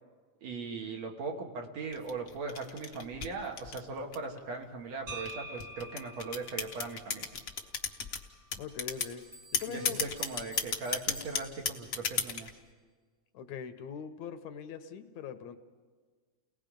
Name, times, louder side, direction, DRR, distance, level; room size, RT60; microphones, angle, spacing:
voice 1, 0.4-7.3 9.7-12.5, right 4 dB, 65° right, 2 dB, 2.9 m, -39 dB
sound 1, 1.9-4.4 5.1-8.2 8.5-9.1 9.5-12.5, left 6 dB, 55° left, 0.9 m, -33 dB
sound 2, 5.1-9.1, right 2 dB, 40° right, 2.2 m, -48 dB
voice 2, 8.6-9.2 9.5-10.0 13.3-15.6, left 7 dB, 75° left, 9 dB, 2.1 m, -42 dB
sound 3, 8.9-12.6, right 1 dB, 15° right, 1.1 m, -53 dB
29.5 x 19.0 x 5.2 m, 1.5 s
omnidirectional pair, 3.4 m